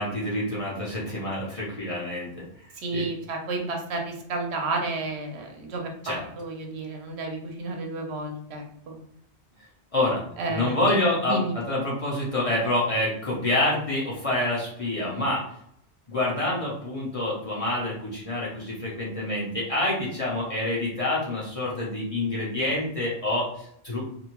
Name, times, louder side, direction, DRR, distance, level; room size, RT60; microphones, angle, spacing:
voice 1, 0.0-2.4 2.9-3.0 6.0-6.3 9.9-10.2 10.5-15.5 16.1-24.0, left 1 dB, 40° left, -5 dB, 0.6 m, -27 dB
voice 2, 2.8-9.0 10.4-11.0 11.3-11.5, right 2 dB, 75° right, 2 dB, 0.9 m, -31 dB
2.6 x 2.1 x 2.9 m, 0.71 s
omnidirectional pair, 1.1 m